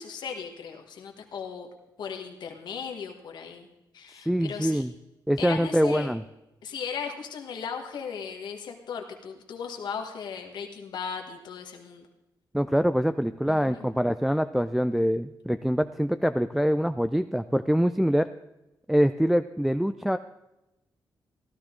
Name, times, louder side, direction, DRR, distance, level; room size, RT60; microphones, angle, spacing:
voice 1, 0.0-1.7 2.0-3.7 3.9-4.8 5.4-6.1 6.6-12.1 13.5-13.9, left 6 dB, 75° left, 3 dB, 1.6 m, -37 dB
voice 2, 4.3-4.9 5.3-6.2 12.5-18.3 18.9-20.2, equal, 5° right, 10 dB, 0.3 m, -24 dB
15.0 x 12.5 x 3.8 m, 0.95 s
cardioid pair, 100°, 8 cm